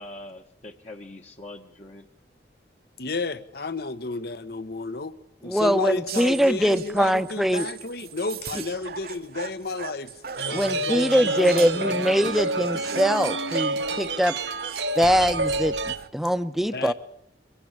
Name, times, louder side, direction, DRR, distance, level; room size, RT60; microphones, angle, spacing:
voice 1, 0.0-2.1, left 2 dB, 40° left, 1.3 m, -43 dB
voice 2, 3.0-5.2 5.4-10.1 10.5-11.9 16.7-16.9, left 3 dB, 60° left, 1.2 m, -32 dB
voice 3, 5.4-7.7 10.5-14.3 15.0-16.9, equal, ahead, 0.8 m, -23 dB
sound 1, 6.1-16.1, right 6 dB, 60° right, 1.0 m, -39 dB
sound 2, 10.4-16.0, right 2 dB, 80° right, 1.2 m, -28 dB
24.0 x 16.0 x 8.8 m
head